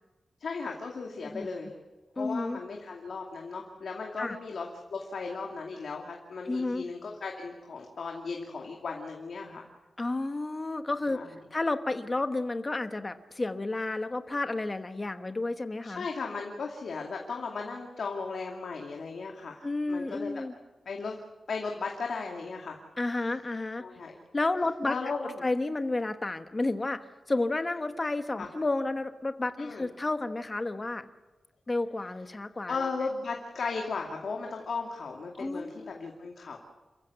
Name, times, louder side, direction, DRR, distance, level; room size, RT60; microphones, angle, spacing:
voice 1, 0.4-1.7 2.1-9.6 11.1-11.3 15.8-20.3 20.9-21.1 21.5-22.8 23.8-24.2 24.8-25.4 28.4-28.5 29.6-29.9 32.7-36.6, left 4 dB, 60° left, 1 dB, 2.4 m, -36 dB
voice 2, 2.2-2.6 4.2-4.4 6.5-6.8 10.0-11.2 11.5-16.0 19.6-20.5 23.0-23.8 24.3-24.9 25.4-31.0 31.7-32.9 35.4-36.0, left 2 dB, 25° left, 9 dB, 1.1 m, -31 dB
28.5 x 15.0 x 8.2 m, 1.2 s
wide cardioid pair, 155°, 0 cm